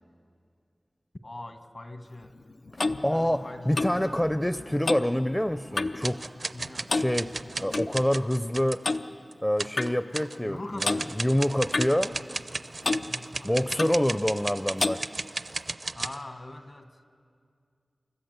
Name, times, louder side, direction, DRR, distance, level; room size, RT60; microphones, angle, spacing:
voice 1, 1.2-2.4 2.9-4.0 6.5-6.9 10.4-11.1 13.1-13.9 15.9-16.9, left 2 dB, 55° left, 7 dB, 1.5 m, -42 dB
Clock, 2.2-6.1 6.4-6.6 6.9-7.9 8.8-9.1 9.8-9.9 10.8-11.0 11.7-12.6 12.8-13.1 13.8-14.0 14.8-15.0, left 3 dB, 85° left, 0.6 m, -30 dB
voice 2, 2.7-6.2 6.9-7.3 7.6-8.8 9.4-12.1 13.4-15.0, equal, 15° left, 11 dB, 0.5 m, -26 dB
sound 1, 6.0-9.0 9.3-9.4 9.6-10.4 10.8-16.2, right 3 dB, 60° right, 0.5 m, -35 dB
29.0 x 13.5 x 8.1 m, 2.3 s
wide cardioid pair, 65°, 0 cm